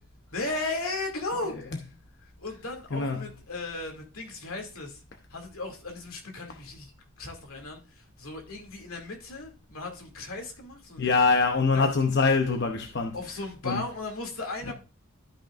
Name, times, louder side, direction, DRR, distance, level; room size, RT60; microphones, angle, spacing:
voice 1, 0.3-1.6 2.2-5.0 5.3-6.9 7.2-11.1 11.7-11.9 13.1-14.7, left 2 dB, 75° left, 2.4 m, -36 dB
voice 2, 2.9-3.3 11.0-13.2 13.6-13.8 14.7-14.8, left 4 dB, 50° left, 0.7 m, -24 dB
13.0 x 5.8 x 2.5 m
head